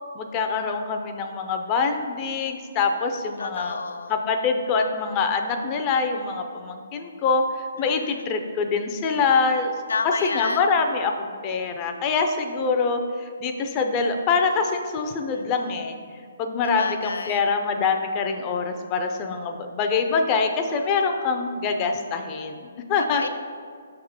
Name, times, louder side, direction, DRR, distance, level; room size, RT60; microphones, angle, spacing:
voice 1, 0.1-3.8 4.1-9.7 10.2-16.0 16.4-23.3, left 4 dB, 25° left, 5 dB, 0.4 m, -25 dB
voice 2, 3.4-4.1 7.8-8.2 9.9-10.6 15.3-15.5 16.6-17.4 23.1-23.3, left 4 dB, 90° left, 7 dB, 0.4 m, -30 dB
6.0 x 3.6 x 4.7 m, 2.1 s
hypercardioid pair, 155°, 0 cm